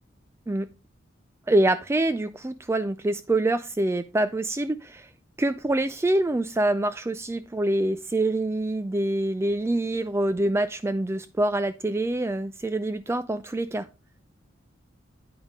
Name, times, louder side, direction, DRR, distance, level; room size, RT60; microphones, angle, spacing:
voice 1, 1.5-5.1 5.4-13.9, right 1 dB, 15° right, 12 dB, 0.3 m, -25 dB
9.6 x 5.3 x 3.6 m, 0.28 s
head